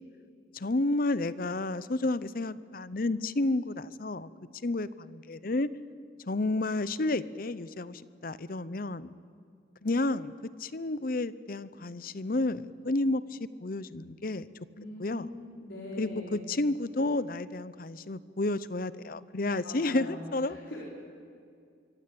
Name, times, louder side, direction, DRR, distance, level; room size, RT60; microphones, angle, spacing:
voice 1, 0.5-4.3 4.6-5.7 6.3-9.1 9.8-10.3 10.6-14.5 15.0-15.3 16.0-20.6, left 2 dB, 50° left, 16 dB, 0.7 m, -31 dB
voice 2, 14.7-16.4 19.6-20.8, left 1 dB, 75° left, -4 dB, 4.7 m, -42 dB
25.0 x 24.0 x 8.6 m, 2.2 s
head